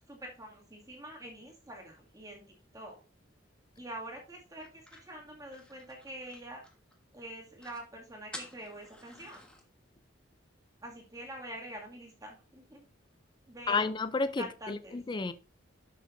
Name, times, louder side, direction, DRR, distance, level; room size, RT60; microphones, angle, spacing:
voice 1, 0.1-2.4 2.7-3.0 3.8-6.6 7.1-9.4 10.8-12.9 13.5-13.8 14.4-15.0, right 1 dB, 15° right, 2.2 m, -45 dB
sound 1, 4.6-7.0 7.3-7.4 7.6-7.9 8.3-9.6, left 1 dB, 5° left, 1.4 m, -50 dB
voice 2, 13.7-15.3, left 4 dB, 25° left, 0.3 m, -31 dB
12.0 x 6.3 x 2.6 m
head